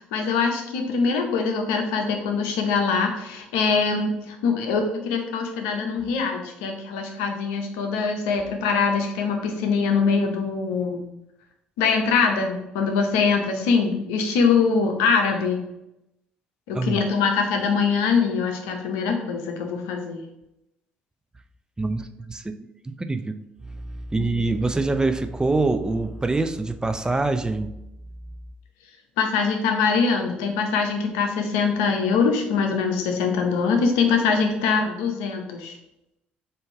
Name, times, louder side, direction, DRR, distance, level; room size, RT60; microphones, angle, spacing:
voice 1, 0.1-11.0 11.8-15.7 16.7-20.2 24.2-24.3 29.2-35.8, left 5 dB, 80° left, 3 dB, 0.7 m, -23 dB
voice 2, 16.7-17.1 21.8-23.4 23.6-27.8, right 3 dB, 15° right, 8 dB, 0.4 m, -25 dB
3.7 x 2.7 x 4.4 m, 0.87 s
hypercardioid pair, 55°, 5 cm